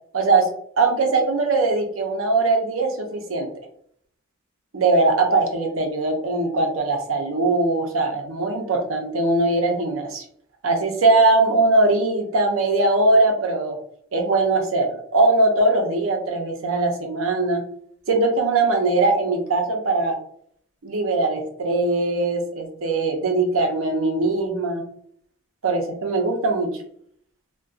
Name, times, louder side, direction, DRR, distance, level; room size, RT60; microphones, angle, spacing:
voice 1, 0.1-0.5 0.8-3.5 4.7-10.2 10.6-13.8 14.1-17.6 18.1-20.1 20.8-24.8 25.6-26.8, right 2 dB, 70° right, 3 dB, 0.6 m, -21 dB
2.6 x 2.2 x 2.3 m, 0.64 s
head